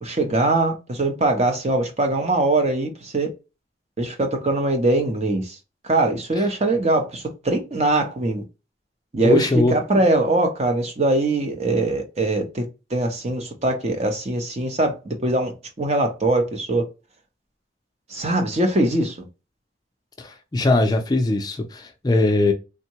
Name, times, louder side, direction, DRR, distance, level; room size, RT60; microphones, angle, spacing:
voice 1, 0.0-3.3 4.0-5.6 5.8-8.4 9.1-12.6 12.9-15.5 15.8-16.8 18.1-19.3, right 2 dB, 35° right, 0.7 m, -22 dB
voice 2, 9.2-9.7 20.2-22.5, left 2 dB, 20° left, 0.4 m, -20 dB
3.5 x 2.1 x 2.8 m
head